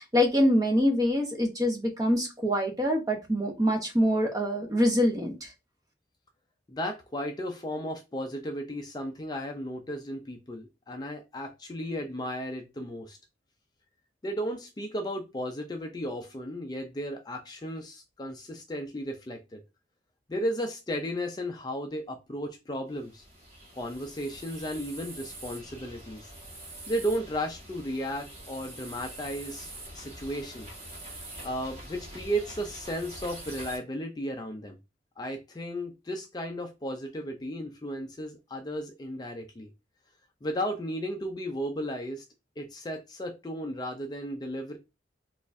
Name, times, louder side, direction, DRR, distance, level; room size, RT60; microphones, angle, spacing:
voice 1, 0.0-5.5, equal, 20° right, 3 dB, 0.7 m, -25 dB
voice 2, 6.7-13.2 14.2-19.6 20.3-23.2 23.7-26.3 26.9-30.7 31.4-34.8 35.2-39.7 40.4-42.2 42.6-44.8, equal, 20° left, 4 dB, 0.4 m, -34 dB
sound 1, 22.9-33.8, right 1 dB, 35° right, 1.2 m, -45 dB
4.1 x 2.5 x 2.5 m, 0.26 s
head